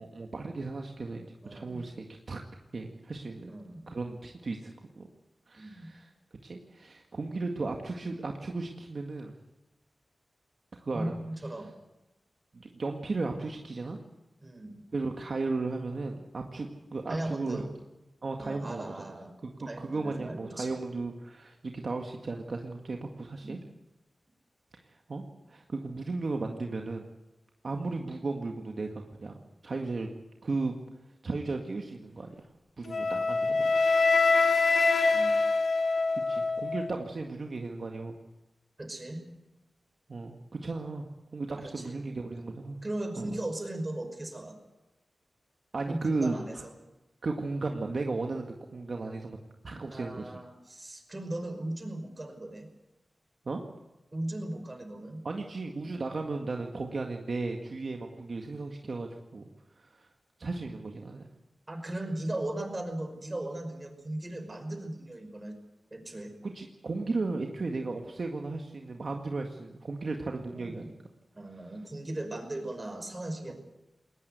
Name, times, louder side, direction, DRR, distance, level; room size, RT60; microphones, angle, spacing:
voice 1, 0.0-2.4 2.7-3.5 3.9-5.1 5.5-6.1 6.4-9.3 10.8-11.1 12.5-14.0 14.9-17.6 18.2-19.1 19.6-23.6 24.7-27.1 27.6-29.3 29.6-30.1 30.4-30.8 31.2-32.3 32.8-33.7 36.3-38.2 40.1-41.1 41.3-42.8 43.2-43.4 45.7-46.7 47.2-49.4 49.6-50.3 53.5-53.6 55.2-59.5 59.8-60.1 60.4-61.3 66.4-70.9 73.5-73.6, right 3 dB, 60° right, 2 dB, 1.9 m, -35 dB
voice 2, 1.4-1.8 3.5-3.9 5.6-5.9 10.9-11.7 14.4-14.8 17.1-17.7 18.4-19.3 19.6-20.7 23.4-23.5 35.1-35.3 38.8-39.2 41.6-42.0 42.8-44.6 45.9-46.7 49.9-52.7 54.1-55.3 61.7-65.6 65.9-66.3 70.5-70.9 71.4-73.5, right 1 dB, 30° right, 6 dB, 5.5 m, -37 dB
Wind instrument woodwind instrument, 32.9-37.0, left 4 dB, 70° left, 2.0 m, -25 dB
20.5 x 19.5 x 8.2 m, 1.0 s
cardioid pair, 65°, 0 cm